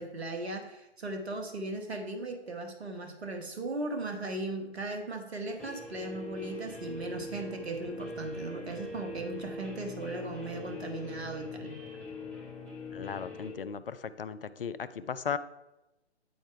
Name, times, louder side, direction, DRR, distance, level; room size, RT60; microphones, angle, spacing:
voice 1, 0.0-11.8, right 2 dB, 65° right, 5 dB, 1.3 m, -37 dB
Guitar, 5.6-13.5, left 2 dB, 5° left, 0.9 m, -42 dB
voice 2, 12.9-15.4, left 7 dB, 55° left, 14 dB, 0.5 m, -36 dB
9.3 x 4.4 x 4.5 m, 0.94 s
figure-of-eight pair, 130°, 34 cm